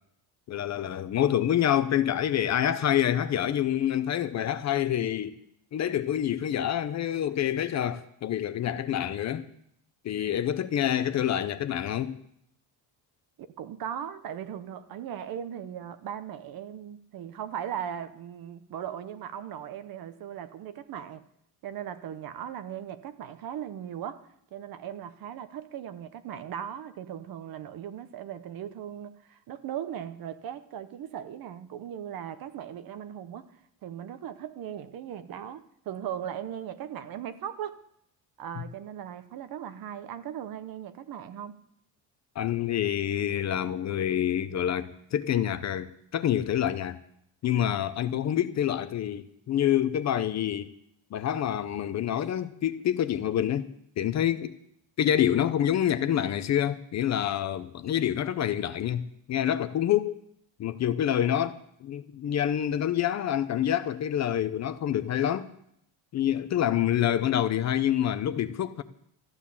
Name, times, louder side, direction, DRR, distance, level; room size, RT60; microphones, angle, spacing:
voice 1, 0.5-5.4 5.7-9.5 10.0-12.1 38.6-38.7 42.4-47.0 47.4-50.7 51.1-53.7 54.0-54.5 55.0-60.1 60.6-65.5 66.1-68.8, left 10 dB, 40° left, 0.6 m, -27 dB
voice 2, 13.6-21.3 21.6-33.5 33.8-37.8 38.4-41.5, right 9 dB, 50° right, 1.0 m, -38 dB
14.0 x 9.8 x 7.1 m
cardioid pair, 160°, 44 cm